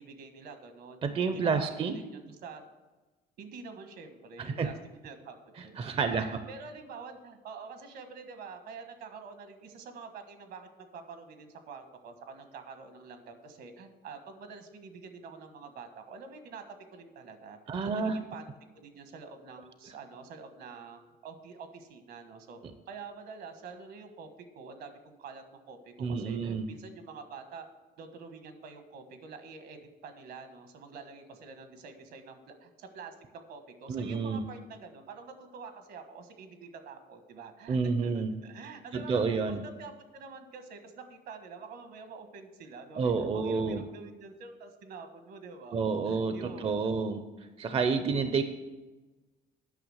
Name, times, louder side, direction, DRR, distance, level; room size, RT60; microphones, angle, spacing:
voice 1, 0.0-1.0 1.3-2.6 3.4-4.7 5.0-16.6 16.9-17.6 17.8-18.5 18.7-22.6 22.9-24.3 24.5-27.7 28.0-46.9, right 5 dB, 75° right, 7 dB, 1.4 m, -47 dB
voice 2, 1.0-2.0 4.4-4.7 5.8-6.3 17.7-18.2 26.0-26.7 33.9-34.4 37.7-38.3 38.9-39.6 43.0-43.9 45.7-47.2 47.6-48.4, right 5 dB, 35° right, 9 dB, 0.6 m, -29 dB
9.1 x 5.9 x 6.4 m, 1.2 s
cardioid pair, 110°, 17 cm